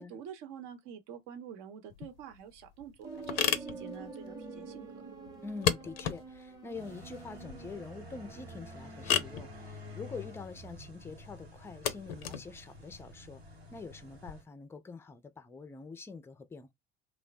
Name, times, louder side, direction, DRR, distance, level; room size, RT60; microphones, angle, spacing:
voice 1, 0.0-5.0, right 8 dB, 60° right, 0.8 m, -47 dB
sound 1, 1.9-14.3, left 9 dB, 70° left, 0.5 m, -37 dB
sound 2, 3.0-10.3, right 3 dB, 10° right, 0.9 m, -48 dB
voice 2, 5.4-13.4 13.7-16.7, left 4 dB, 10° left, 0.4 m, -45 dB
sound 3, 6.7-14.4, left 2 dB, 85° right, 0.9 m, -50 dB
3.0 x 2.1 x 2.6 m
figure-of-eight pair, 60°, 31 cm